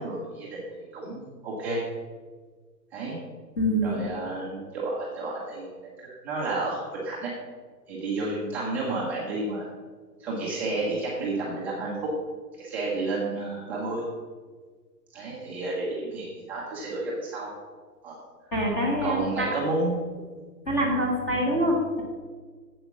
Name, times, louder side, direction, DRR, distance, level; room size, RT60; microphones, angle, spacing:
voice 1, 0.0-1.8 2.9-3.2 3.8-7.3 7.9-9.7 10.2-11.9 12.5-14.0 15.1-17.5 18.0-18.2 19.0-20.0, right 2 dB, 5° right, -7 dB, 0.8 m, -31 dB
voice 2, 3.6-4.0 18.5-19.5 20.6-22.0, equal, 15° left, -2 dB, 1.4 m, -25 dB
12.0 x 8.1 x 6.0 m, 1.5 s
hypercardioid pair, 170°, 50 cm